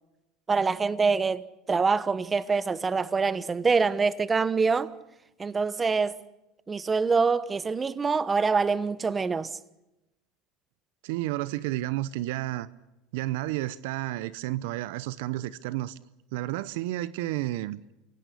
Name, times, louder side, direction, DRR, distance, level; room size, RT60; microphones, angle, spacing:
voice 1, 0.5-1.4 1.7-4.9 5.4-6.2 6.7-9.5, right 4 dB, 25° right, 1.2 m, -25 dB
voice 2, 11.0-12.7 13.1-16.0 16.3-17.8, right 16 dB, 75° right, 0.8 m, -31 dB
27.0 x 17.5 x 8.4 m
hypercardioid pair, 85°, 0 cm